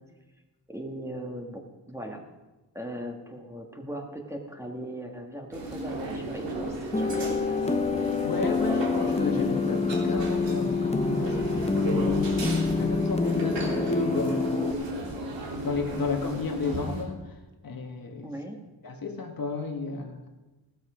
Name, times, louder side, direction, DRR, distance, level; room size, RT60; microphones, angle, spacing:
voice 1, 0.7-2.2 2.7-7.8 18.2-18.6, right 1 dB, 5° right, 2 dB, 1.7 m, -38 dB
sound 1, 5.5-17.0, right 2 dB, 85° right, 3.1 m, -35 dB
sound 2, 6.9-14.7, left 4 dB, 15° left, 0.8 m, -27 dB
voice 2, 8.2-14.7 15.6-17.3 17.6-18.3 18.8-20.2, left 4 dB, 50° left, 3 dB, 1.7 m, -32 dB
16.0 x 13.0 x 5.0 m, 1.1 s
wide cardioid pair, 140°, 43 cm